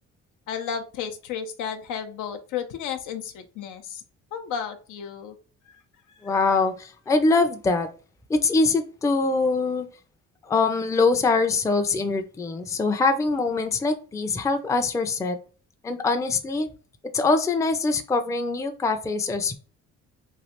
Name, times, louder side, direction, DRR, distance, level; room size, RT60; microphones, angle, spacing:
voice 1, 0.5-4.0 4.3-5.3 5.7-5.8 6.1-6.2, left 7 dB, 85° left, 6 dB, 0.6 m, -33 dB
voice 2, 6.2-7.9 8.3-9.9 10.4-15.4 15.8-16.7 17.1-19.6, left 3 dB, 10° left, 7 dB, 0.4 m, -23 dB
3.1 x 2.4 x 2.9 m, 0.37 s
cardioid pair, 90°, 30 cm